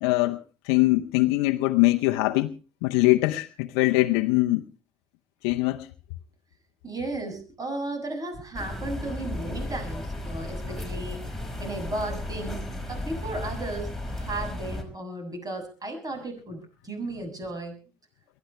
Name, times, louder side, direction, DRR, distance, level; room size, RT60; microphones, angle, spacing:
voice 1, 0.0-0.4 0.7-2.5 2.8-4.6 5.4-5.9, left 20 dB, 80° left, 0.8 m, -22 dB
voice 2, 6.8-11.2 11.6-17.8, right 2 dB, 30° right, 7.1 m, -35 dB
sound 1, 8.5-14.8, left 1 dB, ahead, 5.0 m, -34 dB
22.5 x 15.0 x 3.3 m
hypercardioid pair, 60°, 13 cm